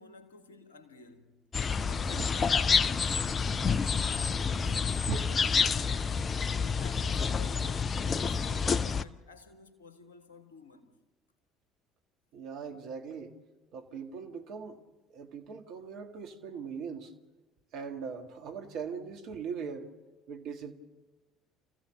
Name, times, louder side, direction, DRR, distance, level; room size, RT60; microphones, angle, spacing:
voice 1, 0.0-1.4 1.9-5.1 5.9-10.9, left 4 dB, 80° left, 1.7 m, -53 dB
sound 1, 1.5-9.0, left 5 dB, 35° left, 0.6 m, -28 dB
voice 2, 12.3-13.4 13.7-14.8 15.1-17.1 17.7-19.9 20.3-20.7, right 6 dB, 60° right, 1.9 m, -39 dB
27.5 x 15.5 x 6.8 m
figure-of-eight pair, 55°, 0 cm